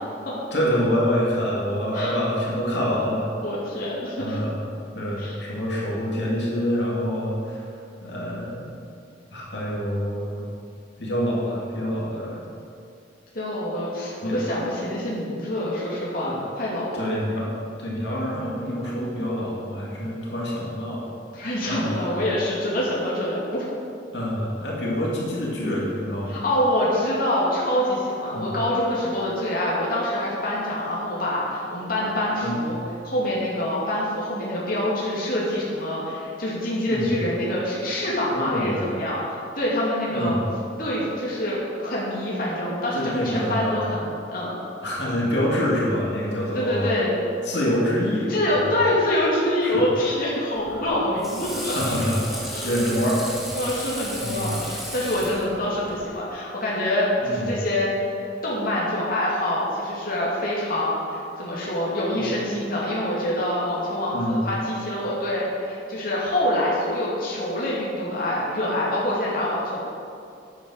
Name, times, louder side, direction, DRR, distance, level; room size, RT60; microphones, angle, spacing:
voice 1, 0.5-3.3 4.2-4.6 4.9-7.6 8.0-8.7 9.3-10.4 11.0-12.4 14.2-14.3 16.2-16.3 16.9-17.5 17.8-21.1 21.7-22.2 24.1-26.4 28.3-28.5 32.4-32.6 36.9-37.1 38.3-38.8 40.1-40.4 42.9-43.8 44.8-46.9 47.4-48.3 48.6-48.7 49.6-49.8 50.7-50.9 51.7-53.9 54.2-54.6 57.2-57.6 64.1-64.4, equal, 70° left, -5 dB, 2.6 m, -26 dB
voice 2, 3.4-4.5 5.2-5.4 13.3-16.9 21.3-23.6 26.3-32.8 33.0-40.4 40.8-44.6 46.5-47.2 48.3-52.2 52.5-52.7 53.5-57.9 58.2-69.8, left 1 dB, 55° left, -6 dB, 2.6 m, -26 dB
Water / Sink (filling or washing), 50.6-56.0, equal, ahead, 2.2 m, -35 dB
9.3 x 9.3 x 6.5 m, 2.5 s
head